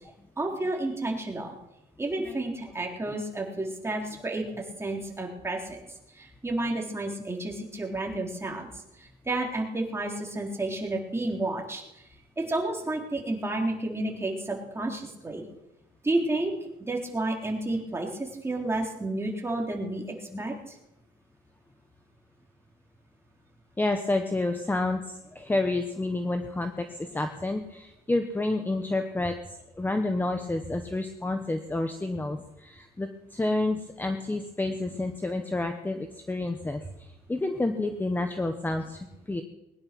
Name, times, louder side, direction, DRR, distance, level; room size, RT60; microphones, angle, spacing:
voice 1, 0.4-1.5 2.0-5.8 6.1-8.7 9.0-12.0 12.4-15.4 16.0-16.5 16.8-20.8, right 2 dB, 15° right, 0 dB, 3.7 m, -31 dB
voice 2, 23.8-39.4, left 2 dB, 10° left, 6 dB, 1.2 m, -29 dB
21.0 x 10.5 x 6.1 m, 0.91 s
cardioid pair, 110°, 17 cm